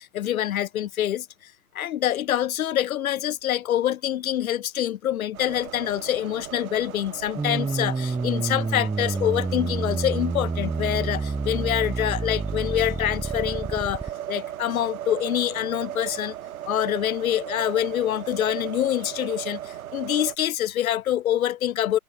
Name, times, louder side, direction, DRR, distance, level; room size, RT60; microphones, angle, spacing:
voice 1, 0.0-14.0 14.3-16.3 16.7-22.0, left 12 dB, 65° left, 5.4 m, -26 dB
sound 1, 5.3-20.4, right 11 dB, 65° right, 3.1 m, -37 dB
sound 2, 7.4-14.1, right 3 dB, 10° right, 2.9 m, -28 dB
hypercardioid pair, 110°, 45 cm